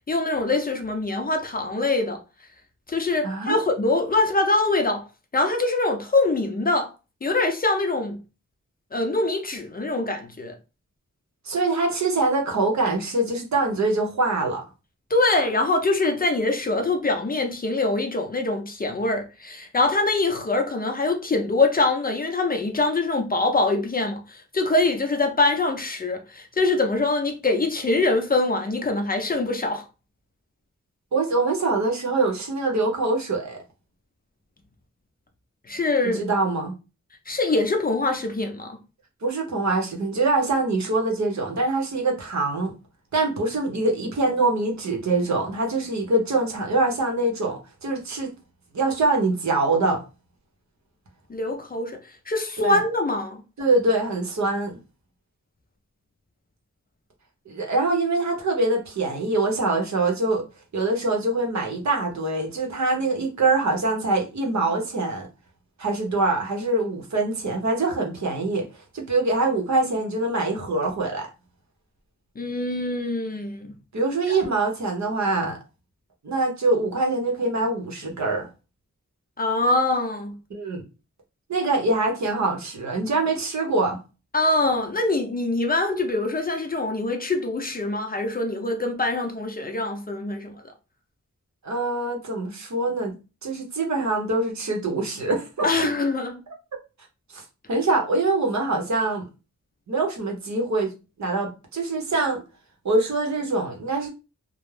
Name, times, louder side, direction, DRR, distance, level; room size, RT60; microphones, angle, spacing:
voice 1, 0.1-2.2 2.9-5.0 5.3-6.9 7.2-8.2 8.9-10.5 15.1-29.9 35.7-36.2 37.3-38.8 51.3-52.0 52.3-53.4 72.4-73.7 74.3-74.4 79.4-80.4 84.3-90.5 95.6-96.4, left 2 dB, 30° left, 0.5 m, -24 dB
voice 2, 3.2-3.6 11.4-14.6 31.1-33.6 36.1-36.7 39.2-42.7 43.1-48.3 48.7-50.0 52.6-52.8 53.6-54.8 57.5-60.4 60.7-65.3 65.8-68.7 68.9-71.3 73.9-75.6 76.2-78.5 80.5-80.8 81.5-84.0 91.6-93.1 93.4-95.7 97.3-99.2 99.9-100.9 101.2-102.4 102.8-104.1, right 2 dB, 65° right, 0.8 m, -24 dB
2.4 x 2.0 x 3.1 m
wide cardioid pair, 105°, 30 cm